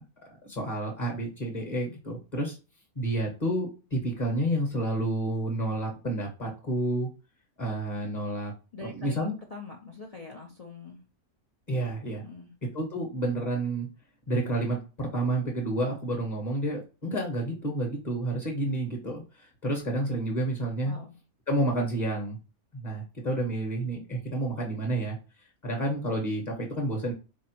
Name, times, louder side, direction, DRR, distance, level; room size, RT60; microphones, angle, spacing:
voice 1, 0.4-2.6 2.9-7.1 7.6-8.5 8.8-9.3 11.7-12.2 12.7-13.9 14.3-20.9 21.5-22.4 22.7-25.2 25.6-27.1, right 1 dB, 35° left, 0 dB, 0.9 m, -30 dB
voice 2, 8.7-11.0 12.2-12.5 20.8-21.2, left 3 dB, 70° left, 1 dB, 0.3 m, -43 dB
4.1 x 2.7 x 2.8 m, 0.31 s
omnidirectional pair, 1.5 m